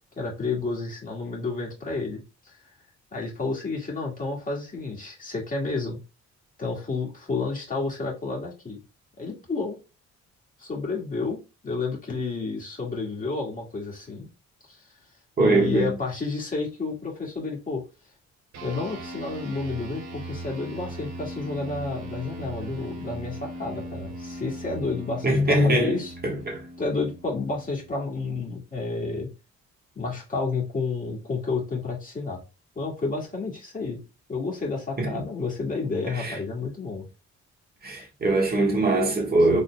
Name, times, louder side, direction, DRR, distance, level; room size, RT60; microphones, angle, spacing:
voice 1, 0.2-2.6 3.1-6.0 6.6-8.8 9.2-9.8 10.6-14.3 14.6-14.8 15.4-17.8 18.6-26.2 26.8-29.3 30.0-32.4 32.8-34.0 34.3-37.1 39.5-39.6, left 3 dB, 25° left, 2.0 m, -30 dB
voice 2, 15.4-15.9 25.2-26.6 35.0-35.2 36.1-36.4 37.8-39.6, right 1 dB, 30° right, 1.6 m, -22 dB
sound 1, 18.5-28.3, right 1 dB, 60° right, 1.2 m, -39 dB
4.2 x 3.3 x 2.3 m
cardioid pair, 90°, 30 cm